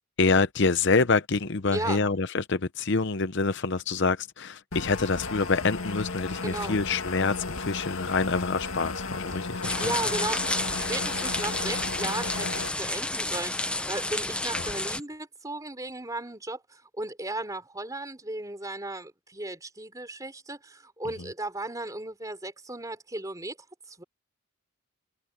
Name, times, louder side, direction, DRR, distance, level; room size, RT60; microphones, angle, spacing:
voice 1, 0.2-9.9 14.5-14.7, left 4 dB, 55° left, 0.7 m, -26 dB
voice 2, 1.7-2.1 6.4-6.8 9.4-9.5 9.8-23.6 23.9-24.0, right 2 dB, 15° right, 4.1 m, -35 dB
sound 1, 4.7-12.7, left 3 dB, 75° left, 2.0 m, -34 dB
sound 2, 9.6-15.0, left 2 dB, 5° left, 0.6 m, -30 dB
head